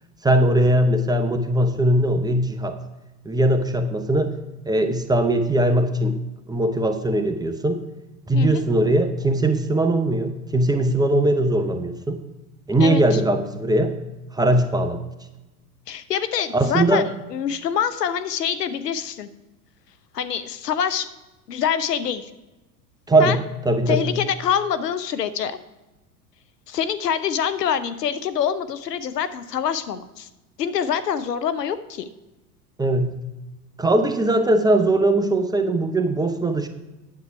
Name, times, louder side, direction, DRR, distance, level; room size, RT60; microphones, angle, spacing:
voice 1, 0.2-2.8 3.2-4.4 4.7-6.2 6.5-7.8 8.3-12.2 12.7-14.0 14.3-15.0 16.5-17.1 23.1-24.2 32.8-33.2 33.8-36.7, right 1 dB, 10° right, 7 dB, 0.7 m, -20 dB
voice 2, 12.8-13.2 15.9-17.0 17.3-19.3 20.1-21.1 21.5-22.3 23.2-23.4 23.9-25.6 26.7-30.3 30.6-32.0, left 8 dB, 85° left, 13 dB, 0.8 m, -25 dB
9.8 x 8.1 x 4.6 m, 1.0 s
hypercardioid pair, 90°, 47 cm